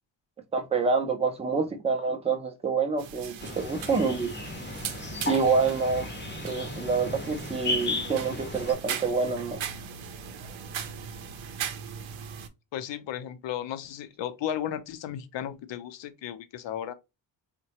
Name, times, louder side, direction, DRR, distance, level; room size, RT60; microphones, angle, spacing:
voice 1, 0.5-4.3 5.3-6.1 6.4-9.6, right 5 dB, 15° right, 0.4 m, -27 dB
sound 1, 3.0-12.5, right 7 dB, 80° right, 0.6 m, -39 dB
sound 2, 3.4-8.7, left 2 dB, 25° left, 0.6 m, -35 dB
voice 2, 12.7-16.9, left 10 dB, 70° left, 0.6 m, -34 dB
3.7 x 2.2 x 2.8 m
wide cardioid pair, 160°, 46 cm